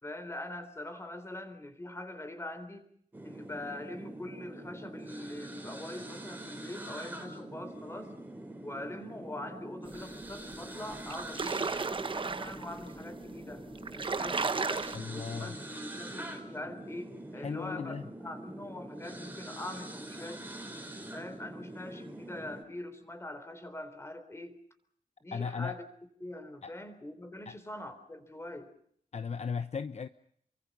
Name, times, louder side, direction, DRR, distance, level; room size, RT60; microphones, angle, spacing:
voice 1, 0.0-2.9 3.2-8.1 8.6-13.7 13.9-20.4 21.1-24.5 25.2-25.8 26.2-28.7, left 1 dB, 20° left, 10 dB, 3.7 m, -43 dB
sound 1, 3.1-22.6, right 1 dB, 15° right, 4.0 m, -44 dB
sound 2, 10.5-10.6 10.9-12.7 13.4-13.5 13.7-15.0, right 4 dB, 40° right, 1.0 m, -33 dB
voice 2, 14.9-15.6 17.4-18.0 25.3-25.8 26.6-26.7 27.5-27.6 29.1-30.1, left 6 dB, 50° left, 11 dB, 0.9 m, -36 dB
28.5 x 24.0 x 5.4 m, 0.66 s
wide cardioid pair, 150°, 14 cm